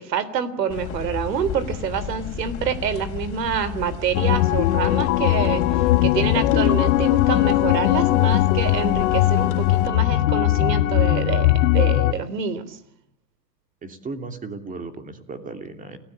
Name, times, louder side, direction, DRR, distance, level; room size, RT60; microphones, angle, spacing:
voice 1, 0.0-12.8, right 7 dB, 80° right, 16 dB, 3.5 m, -27 dB
sound 1, 0.7-9.9, left 8 dB, 25° left, 4.2 m, -32 dB
sound 2, 4.1-12.1, left 16 dB, 55° left, 1.2 m, -19 dB
voice 2, 13.8-16.0, right 3 dB, 15° right, 7 dB, 2.9 m, -35 dB
30.0 x 17.0 x 8.7 m, 0.72 s
hypercardioid pair, 140°, 49 cm